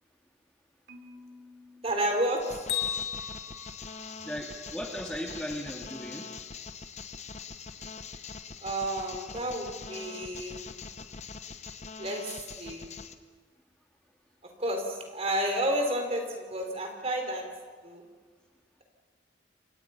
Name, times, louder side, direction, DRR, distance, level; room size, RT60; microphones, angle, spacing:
Marimba xylophone, 0.9-3.1, left 2 dB, 65° right, 2.9 m, -53 dB
voice 1, 1.8-2.4 8.6-10.7 12.0-12.9 14.6-17.4 17.8-18.0, right 1 dB, 35° right, 3 dB, 4.0 m, -31 dB
sound 1, 2.4-13.1, left 5 dB, 40° left, 1.1 m, -43 dB
Bell, 2.7-4.7, left 10 dB, 65° left, 3.0 m, -35 dB
voice 2, 4.2-6.3, equal, 5° left, 0 dB, 2.1 m, -37 dB
28.5 x 25.0 x 5.8 m, 1.5 s
head